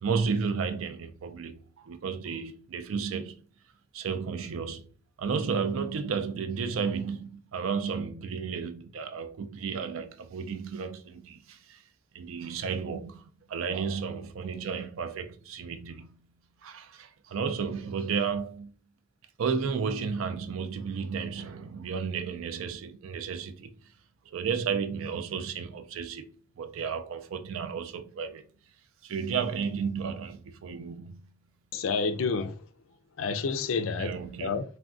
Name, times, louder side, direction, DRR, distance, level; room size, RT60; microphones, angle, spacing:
voice 1, 0.0-3.4 3.9-4.8 5.2-11.8 12.1-16.2 16.6-18.7 19.4-23.8 24.3-28.5 29.0-31.3 34.0-34.6, right 6 dB, 90° right, 0.4 m, -33 dB
voice 2, 31.7-32.6 33.2-34.1 34.4-34.6, left 4 dB, 80° left, 0.4 m, -29 dB
3.4 x 2.2 x 2.4 m
head